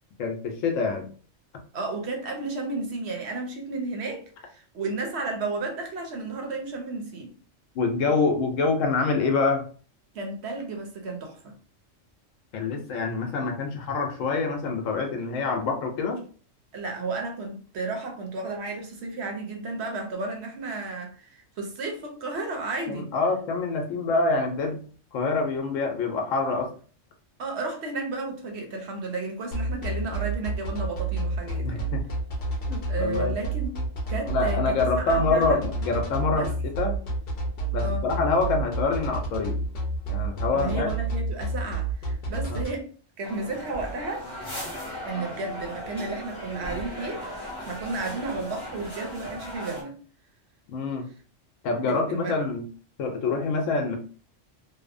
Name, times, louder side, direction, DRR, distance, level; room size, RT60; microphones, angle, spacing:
voice 1, 0.2-1.1 7.8-9.6 12.5-16.2 22.9-24.8 25.1-26.7 31.6-32.0 32.7-33.3 34.3-37.0 37.7-39.6 40.1-40.9 42.4-42.6 50.7-51.0 51.6-52.6 53.0-54.0, left 3 dB, 80° left, 1.0 m, -26 dB
voice 2, 1.7-7.3 10.1-11.5 16.7-23.1 27.4-31.9 32.9-33.8 34.1-35.6 36.3-36.5 37.8-38.0 40.5-42.9 43.2-44.3 45.0-50.0 51.9-52.4, right 3 dB, 65° right, 0.8 m, -33 dB
sound 1, 29.5-42.7, right 2 dB, 55° left, 0.8 m, -29 dB
sound 2, 43.2-49.8, equal, 20° left, 0.7 m, -37 dB
2.8 x 2.0 x 2.4 m
omnidirectional pair, 1.3 m